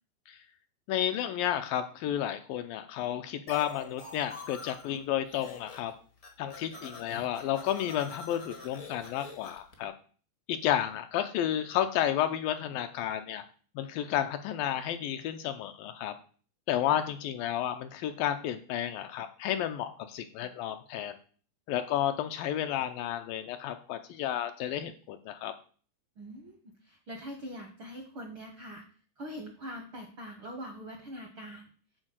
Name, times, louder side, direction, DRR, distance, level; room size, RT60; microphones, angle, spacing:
voice 1, 0.9-5.9 6.4-9.9 10.5-13.4 13.8-16.1 16.7-21.1 21.7-25.5, left 11 dB, 80° left, 8 dB, 2.2 m, -31 dB
sound 1, 3.5-5.0 5.3-5.9 6.2-9.7, left 4 dB, 60° left, 0.9 m, -46 dB
voice 2, 6.7-7.0 16.9-17.1 26.2-28.8 29.2-31.7, equal, 70° right, 3 dB, 1.2 m, -43 dB
8.9 x 4.5 x 7.4 m, 0.42 s
omnidirectional pair, 4.4 m